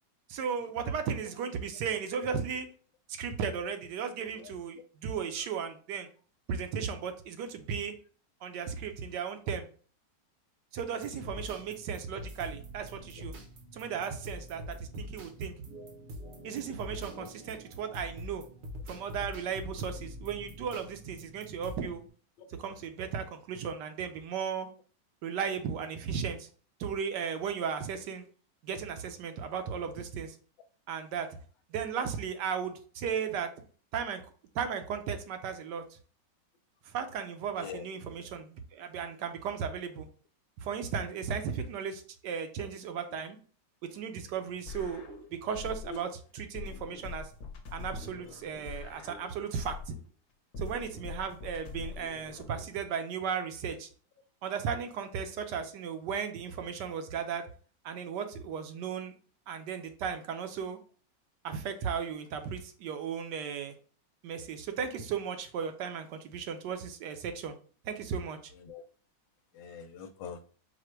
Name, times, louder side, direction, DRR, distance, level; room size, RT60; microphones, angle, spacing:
voice 1, 0.3-2.7 3.2-6.1 6.5-7.9 8.4-9.7 10.7-13.3 13.7-15.5 16.4-18.4 18.9-22.0 22.6-24.7 25.2-26.5 26.8-28.2 28.6-30.3 30.9-31.3 31.7-33.5 33.9-34.2 34.5-35.8 36.9-40.1 40.6-43.4 43.9-46.1 46.4-47.3 47.7-50.0 50.6-53.9 54.4-57.5 57.8-59.1 59.5-60.8 61.4-63.7 64.2-67.5 67.9-68.4, right 7 dB, 75° right, 7 dB, 1.2 m, -35 dB
sound 1, 11.0-22.1, equal, 55° right, 0.8 m, -45 dB
voice 2, 37.6-37.9 43.1-43.2 45.8-46.0 52.4-52.5 68.5-68.8 69.5-70.4, left 6 dB, 90° left, 7 dB, 1.4 m, -44 dB
sound 2, 44.7-46.1 46.5-50.1 50.5-52.7, left 5 dB, 60° left, 1.3 m, -44 dB
4.9 x 2.1 x 4.4 m, 0.42 s
omnidirectional pair, 2.0 m